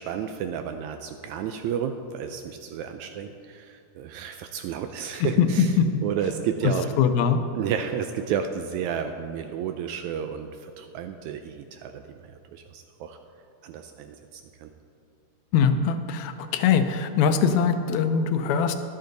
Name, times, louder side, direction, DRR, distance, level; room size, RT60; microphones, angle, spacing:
voice 1, 0.0-5.7 6.0-6.9 7.5-13.2 13.6-14.7, right 8 dB, 80° right, 6 dB, 1.8 m, -32 dB
voice 2, 5.4-5.9 7.0-7.4 15.5-18.7, left 6 dB, 75° left, 9 dB, 1.9 m, -22 dB
12.0 x 11.5 x 4.0 m, 2.5 s
omnidirectional pair, 3.5 m